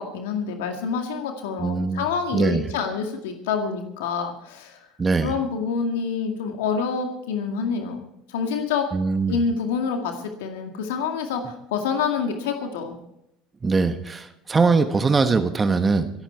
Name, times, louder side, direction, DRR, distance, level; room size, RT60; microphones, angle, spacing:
voice 1, 0.0-4.8 5.2-8.9 9.3-13.0, left 6 dB, 80° left, 4 dB, 2.0 m, -27 dB
voice 2, 1.6-2.0 2.3-2.6 5.0-5.3 8.9-9.4 13.6-16.1, right 4 dB, 25° right, 8 dB, 1.2 m, -21 dB
26.5 x 8.9 x 4.5 m, 0.81 s
hypercardioid pair, 90°, 0 cm